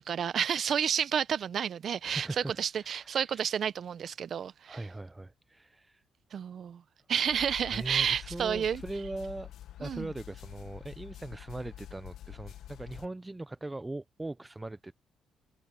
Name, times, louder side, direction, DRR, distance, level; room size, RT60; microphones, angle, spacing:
voice 1, 0.0-4.8 6.3-6.8 7.1-8.8 9.8-10.1, right 8 dB, 55° right, 0.7 m, -30 dB
voice 2, 2.0-3.6 4.7-6.0 7.7-9.5 9.8-14.9, right 2 dB, 15° right, 0.5 m, -40 dB
sound 1, 7.3-13.1, left 12 dB, 80° left, 1.0 m, -47 dB
cardioid pair, 90°, 0 cm